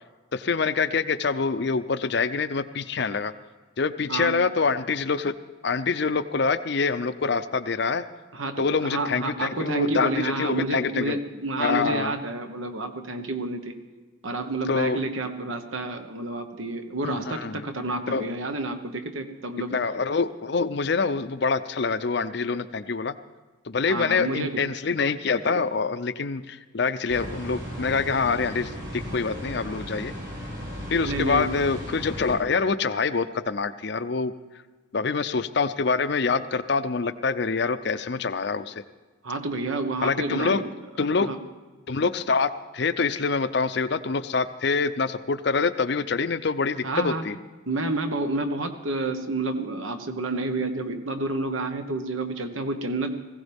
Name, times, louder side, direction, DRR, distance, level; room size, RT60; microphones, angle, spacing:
voice 1, 0.3-3.3 3.8-5.3 5.6-8.0 8.6-11.2 11.6-12.2 14.7-15.0 17.0-17.6 18.1-18.2 19.7-23.1 23.7-30.1 30.9-34.3 34.9-38.8 40.0-40.6 41.0-41.3 41.9-47.4, left 4 dB, 55° left, 12 dB, 0.5 m, -25 dB
voice 2, 8.3-13.8 14.2-19.8 23.9-24.6 31.1-31.5 39.2-40.7 41.2-41.4 46.8-47.2 47.7-53.2, right 2 dB, 80° right, 6 dB, 1.3 m, -29 dB
sound 1, 27.1-32.4, equal, 65° right, 5.4 m, -36 dB
19.5 x 16.0 x 3.6 m, 1.3 s
head